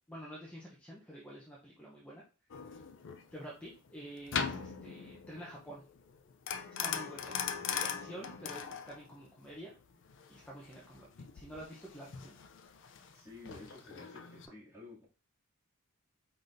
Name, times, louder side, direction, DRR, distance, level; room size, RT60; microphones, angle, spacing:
voice 1, 0.1-2.2 2.7-2.8 3.3-5.8 6.8-7.4 7.8-9.7 10.3-11.1 11.3-12.4, right 1 dB, 5° left, 0.7 m, -48 dB
sound 1, 2.5-14.5, left 7 dB, 60° left, 0.5 m, -41 dB
voice 2, 13.1-15.0, left 2 dB, 15° right, 2.5 m, -52 dB
4.9 x 4.0 x 2.6 m
head